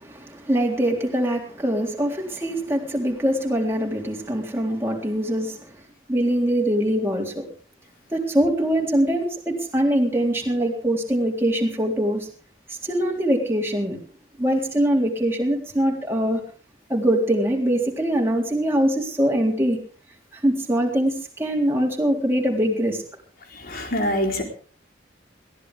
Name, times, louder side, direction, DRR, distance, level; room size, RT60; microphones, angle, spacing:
voice 1, 0.0-5.7 6.1-7.5 8.1-12.3 12.8-14.0 14.4-16.4 16.9-19.8 20.3-23.0, right 1 dB, 15° right, 3.7 m, -23 dB
voice 2, 23.5-24.4, left 1 dB, 50° left, 4.0 m, -25 dB
22.0 x 16.0 x 3.6 m
head